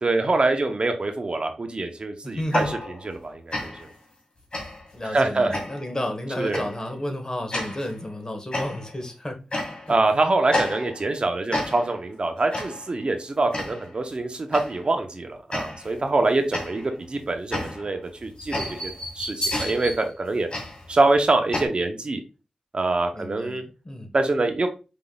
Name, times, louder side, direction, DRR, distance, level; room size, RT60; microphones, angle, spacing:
voice 1, 0.0-2.8 3.0-3.9 5.0-5.6 6.4-6.7 9.9-20.5 20.9-22.2 22.7-23.6 24.1-24.7, right 2 dB, 50° right, 0.7 m, -24 dB
voice 2, 2.2-2.7 4.9-9.4 9.9-10.0 23.1-24.1, left 1 dB, 30° left, 1.1 m, -32 dB
sound 1, 2.4-3.2 3.5-3.9 4.5-4.9 5.5-6.0 6.5-6.8 7.5-7.9 8.5-9.0 9.5-10.0 10.5-11.2 11.5-12.0 12.5-12.9 13.5-13.9 14.5-14.9 15.5-16.0 16.5-21.7, left 1 dB, 50° left, 2.0 m, -31 dB
5.0 x 3.7 x 2.3 m
wide cardioid pair, 60°, 2 cm